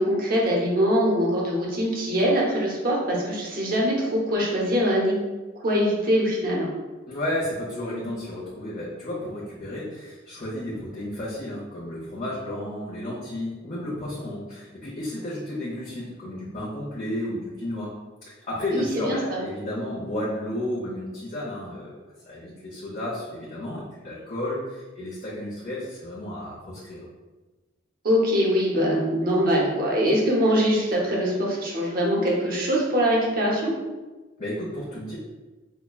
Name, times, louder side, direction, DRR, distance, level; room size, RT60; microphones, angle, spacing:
voice 1, 0.0-5.2 5.6-6.7 18.7-19.4 28.0-33.7, equal, 50° right, -3 dB, 0.9 m, -23 dB
voice 2, 7.1-17.9 18.2-22.0 22.2-27.1 34.4-35.2, left 1 dB, 40° left, -8 dB, 0.8 m, -32 dB
5.6 x 2.2 x 2.3 m, 1.2 s
head